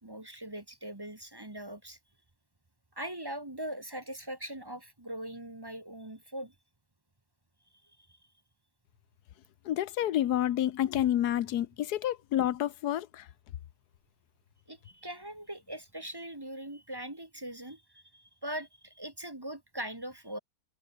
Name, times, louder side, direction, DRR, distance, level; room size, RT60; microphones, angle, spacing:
voice 1, 0.0-2.0 2.9-6.5 8.0-8.2 14.7-20.4, right 1 dB, 15° right, 1.4 m, -41 dB
voice 2, 9.7-13.2, left 12 dB, 85° left, 1.4 m, -29 dB
omnidirectional pair, 1.6 m